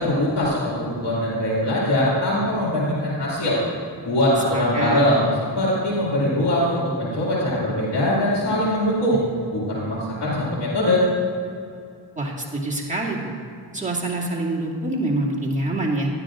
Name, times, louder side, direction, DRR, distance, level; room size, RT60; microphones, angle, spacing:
voice 1, 0.0-3.6 4.1-5.3 5.6-9.2 9.5-11.0, left 1 dB, 60° left, -6 dB, 2.3 m, -22 dB
voice 2, 4.5-5.1 12.2-13.3 13.7-16.1, right 2 dB, 15° right, -3 dB, 2.2 m, -25 dB
12.5 x 9.8 x 2.5 m, 2.4 s
cardioid pair, 45°, 47 cm